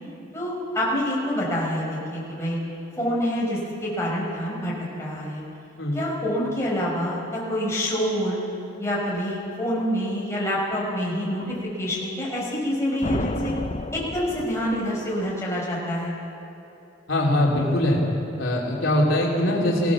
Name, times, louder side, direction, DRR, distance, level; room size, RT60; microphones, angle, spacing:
voice 1, 0.3-2.6 3.0-5.4 5.9-8.4 8.8-13.5 13.9-16.1, equal, 15° left, -5 dB, 5.6 m, -27 dB
sound 1, 13.0-15.1, left 2 dB, 35° left, 0.6 m, -31 dB
voice 2, 17.1-18.0 18.4-19.9, left 1 dB, 85° left, -2 dB, 3.2 m, -22 dB
22.5 x 16.5 x 7.3 m, 2.8 s
head